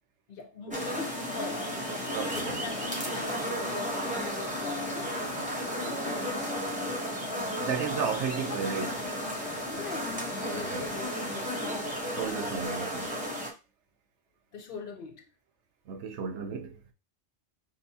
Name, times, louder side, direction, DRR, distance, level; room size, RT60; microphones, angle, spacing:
voice 1, 0.3-1.7 2.3-5.2 5.7-6.7 9.7-12.2 14.5-15.3, left 3 dB, 55° left, 0.9 m, -43 dB
sound 1, 0.7-12.7, left 5 dB, 80° left, 1.0 m, -46 dB
sound 2, 0.7-13.5, equal, 5° right, 0.9 m, -33 dB
voice 2, 2.1-2.6 7.6-9.1 10.5-10.8 12.2-13.1 15.9-16.8, right 6 dB, 85° right, 1.0 m, -34 dB
6.5 x 2.2 x 2.8 m
omnidirectional pair, 1.2 m